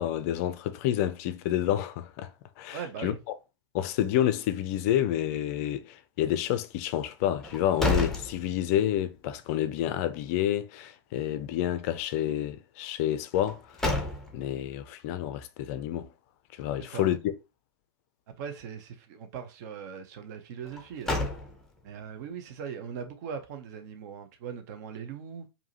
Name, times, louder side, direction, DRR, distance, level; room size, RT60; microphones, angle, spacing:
voice 1, 0.0-2.3 2.6-3.1 3.7-13.6 14.3-16.1 16.6-17.2, left 12 dB, 35° left, 0.5 m, -29 dB
voice 2, 2.7-3.2 16.8-17.1 18.3-21.2 21.8-25.5, right 7 dB, 40° right, 0.7 m, -40 dB
sound 1, 7.4-9.1 9.4-9.5 13.3-14.6 20.6-21.9, left 2 dB, 5° left, 0.8 m, -31 dB
4.7 x 2.7 x 2.9 m
figure-of-eight pair, 110°, 14 cm